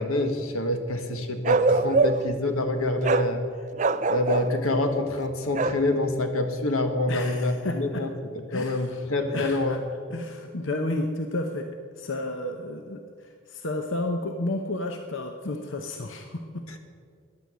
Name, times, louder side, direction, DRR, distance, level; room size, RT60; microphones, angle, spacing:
voice 1, 0.0-3.4 4.1-8.1 8.5-9.8 16.7-16.8, left 2 dB, 85° left, 7 dB, 1.5 m, -26 dB
Bark, 1.4-2.3 3.0-3.3 3.8-4.5 5.5-5.8, right 3 dB, 35° right, 0.4 m, -23 dB
voice 2, 7.1-8.0 8.5-9.1 9.3-9.8 10.1-11.7 12.0-16.6, left 2 dB, 65° left, 4 dB, 0.9 m, -32 dB
15.0 x 10.5 x 6.3 m, 2.1 s
head